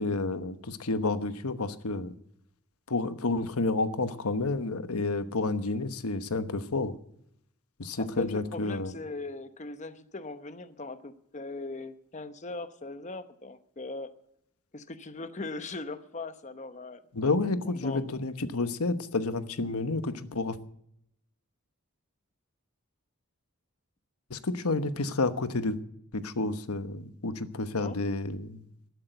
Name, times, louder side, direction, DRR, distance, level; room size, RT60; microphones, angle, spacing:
voice 1, 0.0-2.1 2.9-7.0 7.8-8.9 17.1-20.6 24.3-25.8 26.1-28.6, left 3 dB, 90° left, 11 dB, 1.1 m, -30 dB
voice 2, 8.0-14.1 14.7-17.0 17.8-18.0 27.7-28.0, left 3 dB, 35° left, 11 dB, 0.9 m, -39 dB
12.5 x 12.0 x 8.0 m, 0.73 s
head